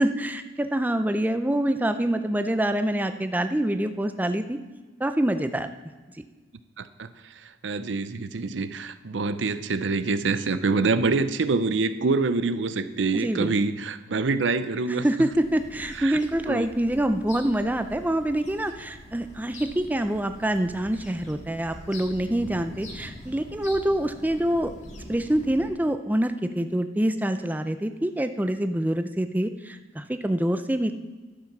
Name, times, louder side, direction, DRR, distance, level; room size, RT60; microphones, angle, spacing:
voice 1, 0.0-4.6 5.0-5.7 13.1-13.5 15.0-24.7 25.1-30.9, right 1 dB, 10° right, 9 dB, 0.5 m, -26 dB
voice 2, 6.8-15.3 16.0-16.2 16.5-16.7, right 3 dB, 75° right, 13 dB, 0.6 m, -26 dB
sound 1, 15.3-25.7, left 1 dB, 40° left, 1.7 m, -44 dB
11.5 x 7.3 x 6.0 m, 1.3 s
head